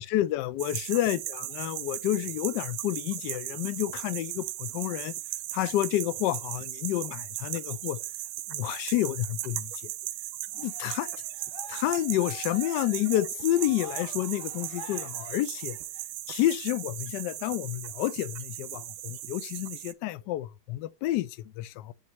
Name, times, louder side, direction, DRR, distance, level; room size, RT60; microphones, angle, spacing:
voice 1, 0.0-5.1 5.5-8.0 8.5-9.7 10.5-11.1 11.7-15.8 16.3-21.9, left 14 dB, 75° left, 1.1 m, -29 dB
sound 1, 0.6-19.9, right 15 dB, 80° right, 1.4 m, -37 dB
Cheering, 10.5-16.0, left 4 dB, 90° left, 2.3 m, -46 dB
9.6 x 4.0 x 2.9 m
omnidirectional pair, 2.2 m